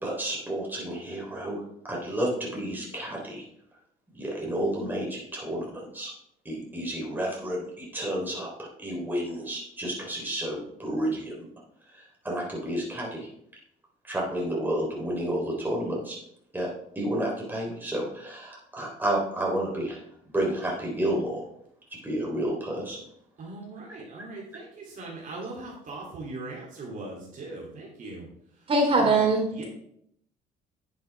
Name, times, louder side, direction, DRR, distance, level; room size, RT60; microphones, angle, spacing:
voice 1, 0.0-1.6 1.9-3.4 4.1-6.1 6.5-11.4 11.9-13.3 14.0-16.2 16.5-16.7 17.0-20.0 20.3-21.4 22.0-23.0, right 1 dB, 10° right, -3 dB, 3.6 m, -31 dB
voice 2, 23.4-28.3 28.9-29.2 29.5-29.6, right 2 dB, 50° right, -3 dB, 3.0 m, -40 dB
voice 3, 28.7-29.6, right 3 dB, 35° right, 0 dB, 3.8 m, -22 dB
11.0 x 7.7 x 3.5 m, 0.72 s
cardioid pair, 110°, 17 cm